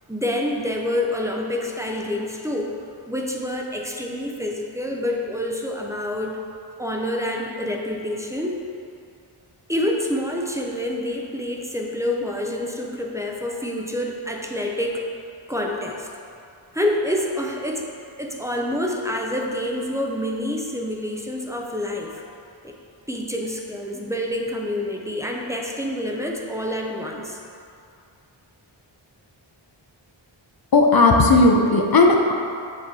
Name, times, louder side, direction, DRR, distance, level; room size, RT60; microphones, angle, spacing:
voice 1, 0.1-2.7 3.1-6.4 6.8-8.6 9.7-15.0 15.5-16.1 16.7-17.9 18.2-22.2 22.6-22.8 23.1-27.4, left 1 dB, 5° right, 0 dB, 0.5 m, -27 dB
voice 2, 30.7-32.3, left 3 dB, 50° left, 2 dB, 0.6 m, -15 dB
7.6 x 3.0 x 4.1 m, 2.5 s
wide cardioid pair, 85°, 47 cm